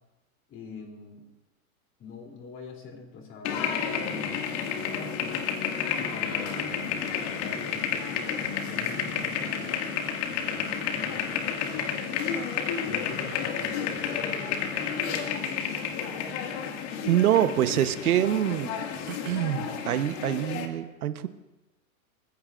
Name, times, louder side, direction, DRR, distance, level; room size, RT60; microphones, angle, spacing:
voice 1, 0.5-1.2 2.0-5.5 5.9-9.8 10.3-12.3 12.8-14.9, left 4 dB, 30° left, 2 dB, 3.1 m, -44 dB
sound 1, 3.4-20.7, left 7 dB, 55° left, 2.1 m, -31 dB
voice 2, 17.0-18.7 19.1-21.3, right 11 dB, 90° right, 11 dB, 1.1 m, -25 dB
29.0 x 15.5 x 2.5 m, 1.0 s
hypercardioid pair, 130°, 43 cm